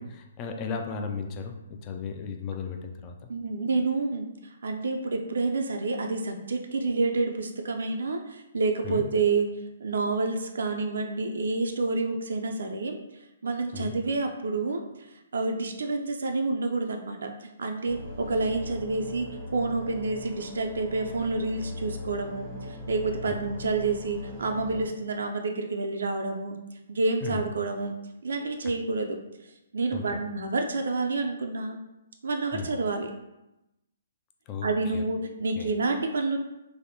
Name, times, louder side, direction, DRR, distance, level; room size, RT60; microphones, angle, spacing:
voice 1, 0.0-1.5 1.8-3.2 8.8-9.0 13.7-13.9 23.3-23.4 27.2-27.4 29.9-30.2 32.5-32.7 34.5-34.7 34.9-35.0 35.6-35.7, left 5 dB, 25° left, 3 dB, 0.3 m, -35 dB
voice 2, 3.3-9.5 9.8-13.0 13.4-14.9 15.3-26.6 26.9-28.0 28.2-29.2 29.7-31.8 32.2-33.1 34.6-36.4, right 3 dB, 75° right, 3 dB, 0.3 m, -28 dB
sound 1, 17.8-24.9, left 2 dB, 10° left, 0.8 m, -40 dB
3.3 x 2.1 x 2.6 m, 0.93 s
hypercardioid pair, 140°, 0 cm